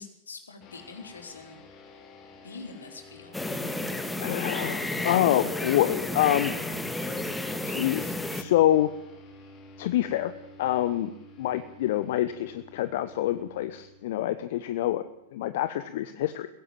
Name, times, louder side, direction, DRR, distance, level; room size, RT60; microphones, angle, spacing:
voice 1, 0.0-1.6 2.4-3.4, left 4 dB, 70° left, 4 dB, 4.2 m, -44 dB
sound 1, 0.6-15.4, left 1 dB, 30° left, 5.0 m, -50 dB
sound 2, 3.3-8.4, left 1 dB, 5° left, 1.9 m, -32 dB
voice 2, 4.2-6.5 7.7-8.9 9.8-10.3 10.6-11.1 11.4-16.5, left 13 dB, 50° left, 12 dB, 1.0 m, -26 dB
22.0 x 16.5 x 7.8 m, 0.85 s
figure-of-eight pair, 100°, 0 cm